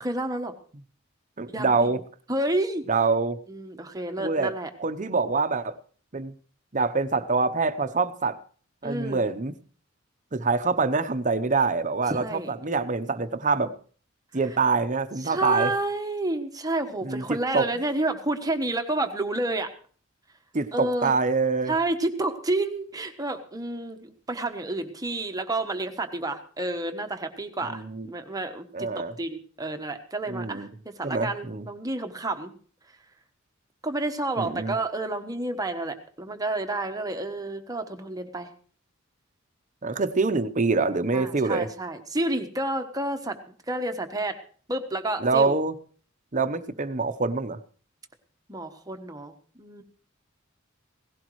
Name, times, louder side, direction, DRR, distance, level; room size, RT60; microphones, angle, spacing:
voice 1, 0.0-0.5 1.5-1.9 2.3-2.8 3.5-4.7 8.8-9.2 12.1-12.5 15.2-19.7 20.7-21.1 21.7-30.7 31.0-32.5 33.8-38.5 41.1-44.4 44.7-45.6 48.5-49.8, right 2 dB, 20° right, 6 dB, 1.1 m, -30 dB
voice 2, 1.4-2.0 2.9-3.4 4.2-4.5 4.8-5.8 6.1-6.3 6.7-8.4 8.8-9.5 10.3-13.7 14.3-15.7 17.0-17.7 20.5-21.7 27.7-28.1 28.7-29.1 30.3-30.7 31.0-31.6 34.4-34.7 39.8-41.7 45.2-45.7 46.3-47.6, right 4 dB, 40° right, 11 dB, 0.9 m, -25 dB
17.5 x 16.0 x 3.1 m, 0.43 s
head